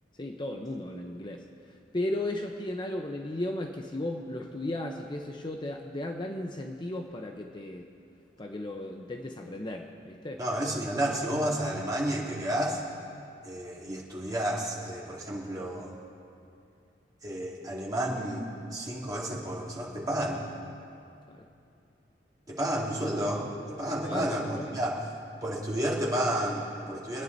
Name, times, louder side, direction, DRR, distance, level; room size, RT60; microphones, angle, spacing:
voice 1, 0.2-7.9 8.4-10.4 21.3-21.5 24.0-24.8, left 1 dB, 25° left, 3 dB, 0.7 m, -35 dB
voice 2, 10.4-12.8 13.4-15.9 17.2-20.4 22.5-25.0 25.4-27.2, right 1 dB, 20° right, -4 dB, 2.6 m, -31 dB
26.0 x 9.9 x 4.0 m, 2.5 s
head